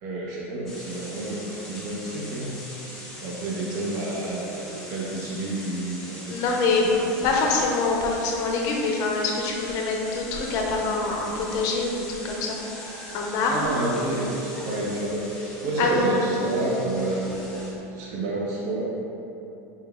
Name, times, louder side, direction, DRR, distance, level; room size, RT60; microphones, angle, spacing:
voice 1, 0.0-2.6 3.2-6.6 7.0-7.3 13.5-15.3 15.6-17.3 17.9-18.8, right 2 dB, 50° right, -5 dB, 0.7 m, -29 dB
sound 1, 0.7-17.7, left 1 dB, 5° left, 1.3 m, -41 dB
voice 2, 6.3-12.6 13.1-13.7 15.8-16.2, left 3 dB, 50° left, 0 dB, 0.6 m, -25 dB
4.2 x 3.9 x 2.3 m, 3.0 s
supercardioid pair, 150°, 8 cm